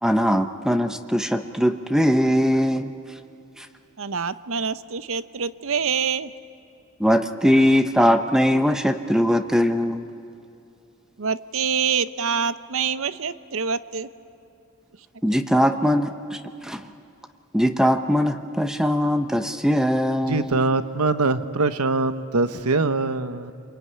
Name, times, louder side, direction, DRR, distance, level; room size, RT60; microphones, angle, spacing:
voice 1, 0.0-2.9 3.6-3.7 7.0-10.0 15.2-16.8 17.5-20.6, equal, 5° right, 8 dB, 0.8 m, -21 dB
voice 2, 4.0-6.3 11.2-14.1, right 6 dB, 65° right, 14 dB, 0.7 m, -26 dB
voice 3, 20.3-23.5, right 3 dB, 90° right, 11 dB, 1.0 m, -23 dB
27.0 x 22.0 x 9.7 m, 2.6 s
head